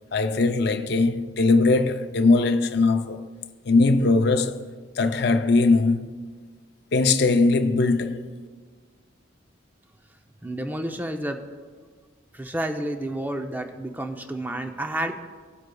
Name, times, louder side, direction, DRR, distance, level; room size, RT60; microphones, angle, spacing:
voice 1, 0.1-3.2 3.6-4.6 5.0-6.1 6.9-8.3, left 3 dB, 55° left, 0.5 m, -20 dB
voice 2, 10.4-11.4 12.3-15.1, right 1 dB, 10° right, 0.5 m, -30 dB
17.5 x 7.9 x 2.3 m
head